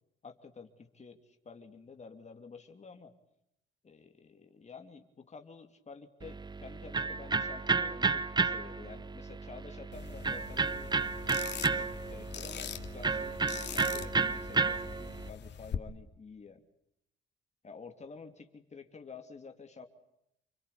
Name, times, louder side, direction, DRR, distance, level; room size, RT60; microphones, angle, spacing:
voice 1, 0.2-3.1 3.8-10.9 11.8-13.4 13.6-16.6 17.6-19.9, left 4 dB, 35° left, 5 dB, 2.9 m, -50 dB
Electric guitar, 6.2-15.3, right 4 dB, 20° right, 1.0 m, -32 dB
sound 1, 9.9-15.8, left 8 dB, 60° left, 2.5 m, -43 dB
29.0 x 22.5 x 8.5 m, 0.80 s
cardioid pair, 90°, 20 cm